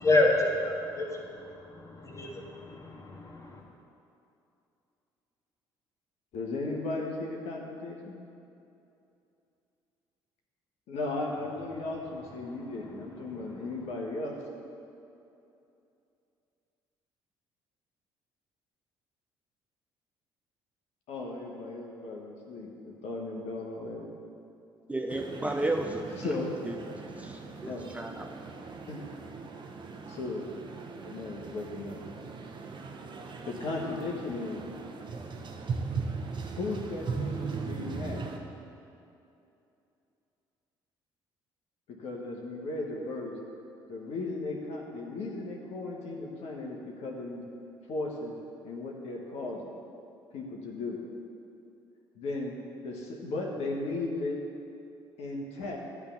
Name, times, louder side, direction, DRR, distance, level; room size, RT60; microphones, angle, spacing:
voice 1, 0.0-3.6, left 2 dB, 25° left, -1 dB, 1.7 m, -29 dB
voice 2, 6.3-8.3 10.9-14.4 21.1-24.1 26.2-26.5 27.6-27.9 28.9-29.1 30.1-30.5 31.1-32.0 33.4-34.6 36.5-38.3 42.0-43.4 43.9-47.4 47.9-48.3 48.6-49.7 50.3-51.0 52.2-52.5 52.8-54.4 55.2-55.8, left 2 dB, 60° left, 0 dB, 1.3 m, -36 dB
voice 3, 24.9-26.4 26.6-26.7 27.1-28.4, right 2 dB, 10° right, 3 dB, 0.6 m, -33 dB
sound 1, 25.1-38.4, right 4 dB, 40° right, 0.9 m, -39 dB
10.5 x 3.6 x 7.2 m, 2.7 s
hypercardioid pair, 50°, 12 cm